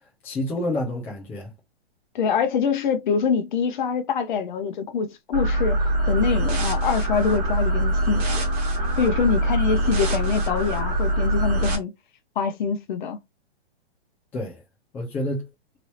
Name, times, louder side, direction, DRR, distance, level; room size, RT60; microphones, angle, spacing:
voice 1, 0.2-1.5 14.3-14.6 14.9-15.5, left 1 dB, 5° left, 0.4 m, -28 dB
voice 2, 2.1-8.4 9.0-11.9 12.4-13.2, left 6 dB, 50° left, 0.9 m, -25 dB
sound 1, 5.3-11.8, right 1 dB, 35° right, 1.4 m, -23 dB
3.1 x 2.6 x 3.0 m
hypercardioid pair, 155°, 31 cm